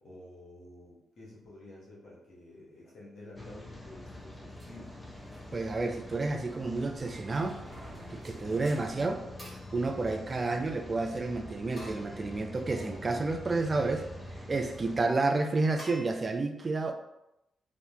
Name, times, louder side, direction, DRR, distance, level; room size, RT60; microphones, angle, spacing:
voice 1, 0.0-4.9, left 1 dB, 65° left, -5 dB, 0.9 m, -50 dB
Rain, 3.4-15.0, left 1 dB, 15° left, 0.6 m, -45 dB
sound 1, 4.6-9.8, right 1 dB, 20° right, 0.9 m, -53 dB
voice 2, 5.5-7.7 8.1-9.2 9.7-14.1 14.5-16.9, right 3 dB, 40° right, 5 dB, 0.3 m, -30 dB
sound 2, 8.1-8.6 9.4-10.8 11.8-12.9 13.4-14.1 15.8-16.0, equal, 35° left, 1.1 m, -51 dB
2.3 x 2.0 x 2.8 m, 0.87 s
supercardioid pair, 50°, 0 cm